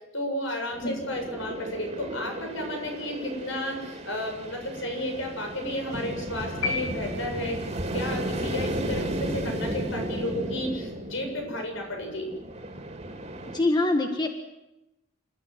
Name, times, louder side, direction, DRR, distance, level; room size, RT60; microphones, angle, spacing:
voice 1, 0.1-7.6 7.9-12.3, left 1 dB, 70° left, 3 dB, 7.6 m, -32 dB
sound 1, 0.7-13.6, right 1 dB, 30° right, 3.2 m, -34 dB
sound 2, 6.6-7.9, left 4 dB, 85° left, 5.4 m, -32 dB
voice 2, 13.5-14.3, left 2 dB, 20° left, 5 dB, 1.5 m, -24 dB
28.0 x 14.0 x 9.7 m, 0.95 s
head